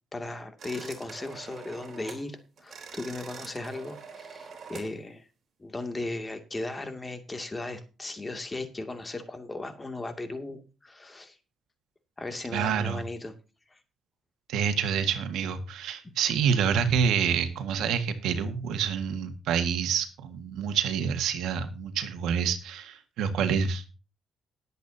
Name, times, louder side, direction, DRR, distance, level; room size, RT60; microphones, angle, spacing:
voice 1, 0.1-5.3 5.6-11.4 12.2-13.3 13.7-13.8 16.0-16.1, left 2 dB, 20° left, 7 dB, 2.4 m, -37 dB
sound 1, 0.6-2.3 2.6-4.9, right 6 dB, 55° right, 3.8 m, -45 dB
voice 2, 12.5-13.0 14.5-23.9, right 7 dB, 85° right, 9 dB, 1.7 m, -27 dB
20.0 x 8.4 x 2.8 m, 0.33 s
cardioid pair, 90°, 0 cm